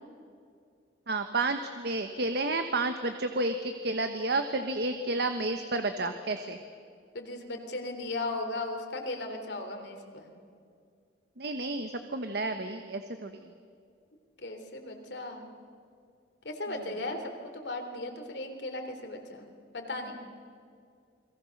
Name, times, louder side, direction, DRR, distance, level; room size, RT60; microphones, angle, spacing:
voice 1, 1.1-6.6 11.4-13.5, right 2 dB, 60° right, 7 dB, 1.2 m, -31 dB
voice 2, 7.1-10.3 14.4-15.5 16.4-19.5 19.7-20.1, left 2 dB, 65° left, 5 dB, 3.4 m, -37 dB
29.0 x 22.0 x 6.6 m, 2.3 s
head